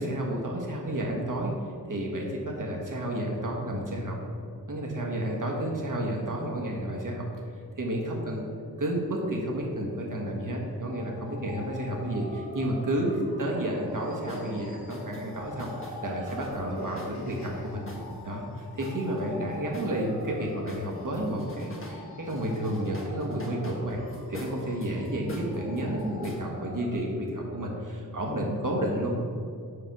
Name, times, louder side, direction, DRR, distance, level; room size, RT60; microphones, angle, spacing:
voice 1, 0.0-1.5 1.9-4.2 4.7-7.3 7.8-8.4 8.8-17.8 18.2-24.0 24.3-29.1, right 1 dB, 55° right, -1 dB, 1.5 m, -31 dB
sound 1, 10.8-27.0, left 1 dB, 75° left, 1.6 m, -46 dB
sound 2, 14.3-14.5 14.9-18.2 18.8-20.3 20.7-22.0 22.3-26.4, left 1 dB, 35° left, 1.3 m, -44 dB
5.0 x 4.8 x 6.0 m, 2.4 s
cardioid pair, 40°, 37 cm